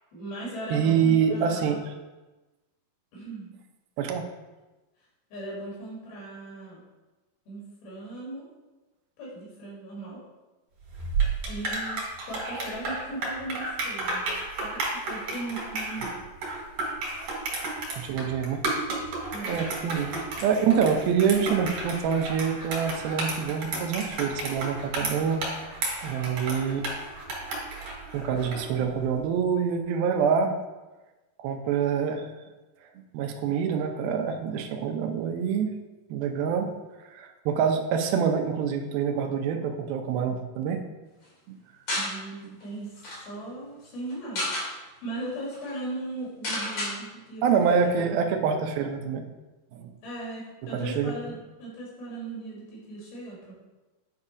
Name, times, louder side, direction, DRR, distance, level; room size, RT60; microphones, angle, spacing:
voice 1, 0.1-1.8 3.1-3.5 5.3-6.8 7.5-8.5 9.2-10.2 11.5-14.2 14.6-16.1 16.8-16.9 19.3-19.6 41.9-42.9 43.3-48.2 50.0-53.6, right 2 dB, 85° left, -5 dB, 4.7 m, -38 dB
voice 2, 0.7-1.8 4.0-4.3 18.0-18.6 19.4-20.1 20.4-25.4 26.0-26.9 28.1-30.6 31.4-32.3 33.1-35.7 36.1-36.7 37.1-40.8 41.5-41.6 47.4-49.3 49.7-49.9 50.6-51.1, right 7 dB, 80° right, 5 dB, 2.6 m, -26 dB
sound 1, 10.9-28.7, right 3 dB, 60° right, 3.6 m, -32 dB
sound 2, 41.9-42.1 42.6-42.7 42.9-43.2 44.1-44.7 45.2-45.3 45.5-45.7 46.4-46.9, left 1 dB, 45° left, 3.7 m, -30 dB
9.8 x 4.1 x 4.9 m, 1.1 s
omnidirectional pair, 4.3 m